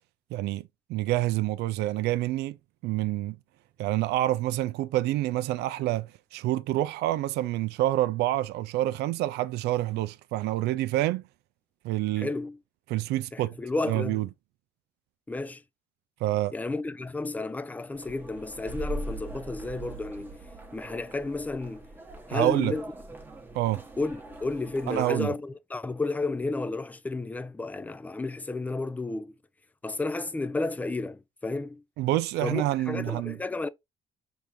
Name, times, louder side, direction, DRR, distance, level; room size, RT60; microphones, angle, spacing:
voice 1, 0.3-2.6 2.8-3.4 3.8-11.2 11.8-12.3 12.9-13.6 13.9-14.3 16.2-16.5 22.3-22.8 23.5-23.8 24.9-25.3 32.0-33.4, right 15 dB, 80° right, 0.4 m, -27 dB
voice 2, 12.2-12.6 13.3-14.2 15.3-15.6 16.5-20.4 20.7-21.9 22.3-22.8 24.0-29.3 29.8-31.8 32.4-33.7, left 3 dB, 10° left, 0.4 m, -32 dB
sound 1, 17.9-25.0, right 2 dB, 10° right, 1.0 m, -41 dB
5.2 x 3.4 x 2.9 m
cardioid pair, 110°, 17 cm